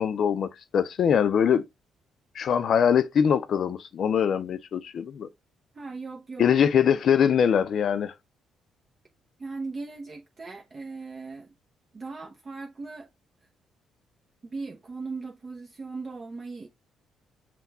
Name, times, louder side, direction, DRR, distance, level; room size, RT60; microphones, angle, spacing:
voice 1, 0.0-1.7 2.3-5.3 6.4-8.1, left 8 dB, 60° left, 0.5 m, -23 dB
voice 2, 5.7-6.5 9.4-11.5 11.9-13.1 14.4-16.7, right 3 dB, 35° right, 0.8 m, -38 dB
5.8 x 2.2 x 4.1 m
cardioid pair, 90°, 0 cm